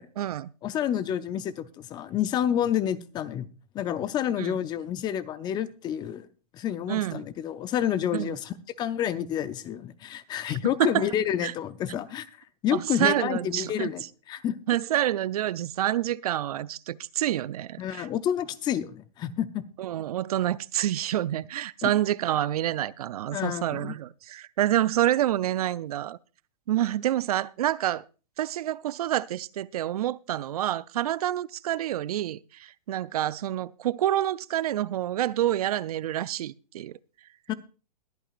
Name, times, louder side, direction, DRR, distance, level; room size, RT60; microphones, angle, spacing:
voice 1, 0.0-0.5 4.4-4.6 6.9-7.3 8.1-8.4 10.8-11.1 11.4-11.5 12.7-13.9 14.7-18.1 19.8-26.2 26.7-28.0 28.4-37.0, right 13 dB, 65° right, 0.5 m, -28 dB
voice 2, 0.6-3.5 3.7-6.3 6.5-12.3 12.6-14.5 17.8-19.6 21.8-21.9 23.3-23.9 37.5-37.6, left 10 dB, 20° left, 0.6 m, -29 dB
21.5 x 8.9 x 2.5 m
hypercardioid pair, 135°, 21 cm